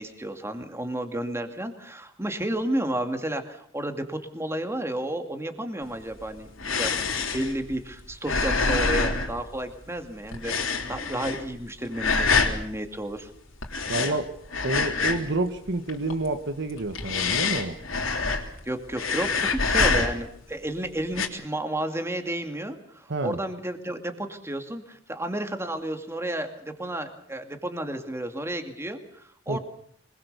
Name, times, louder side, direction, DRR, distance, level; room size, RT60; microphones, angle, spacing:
voice 1, 0.0-6.9 7.3-13.3 13.8-14.2 18.7-29.6, right 1 dB, 15° right, 6 dB, 2.3 m, -32 dB
sound 1, 5.9-10.0 10.3-11.6 11.9-12.6 13.6-15.4 15.7-16.3 16.7-18.6 18.9-20.4 21.0-21.3, left 4 dB, 85° left, 3.3 m, -26 dB
voice 2, 13.9-14.3 14.6-17.8 23.1-23.4 29.5-29.6, right 2 dB, 60° right, 8 dB, 1.3 m, -28 dB
25.5 x 21.0 x 6.8 m, 0.65 s
head